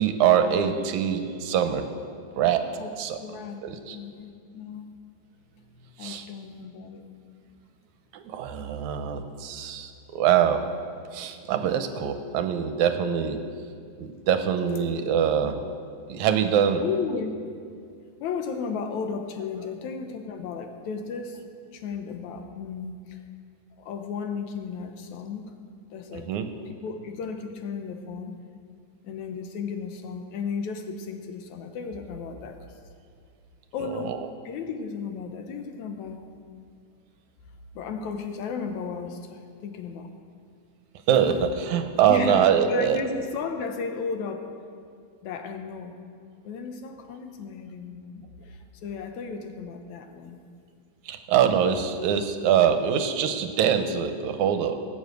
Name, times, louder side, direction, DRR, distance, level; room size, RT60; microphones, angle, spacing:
voice 1, 0.0-1.9 2.4-3.2 3.6-4.0 6.0-6.3 8.1-10.7 11.1-13.5 14.0-15.6 16.1-16.8 26.1-26.5 33.8-34.2 41.1-43.0 51.1-54.8, right 8 dB, 80° right, 8 dB, 2.2 m, -24 dB
voice 2, 3.2-3.6 3.9-4.9 6.0-7.0 11.6-11.7 16.8-17.3 18.2-21.4 21.7-23.2 23.8-25.5 25.9-26.3 26.7-28.4 29.0-32.6 33.7-34.2 34.4-36.3 37.7-40.1 41.3-41.4 42.1-44.5 45.2-46.0 46.4-50.4, left 5 dB, 80° left, 6 dB, 2.3 m, -34 dB
18.5 x 7.1 x 8.0 m, 2.2 s
omnidirectional pair, 3.4 m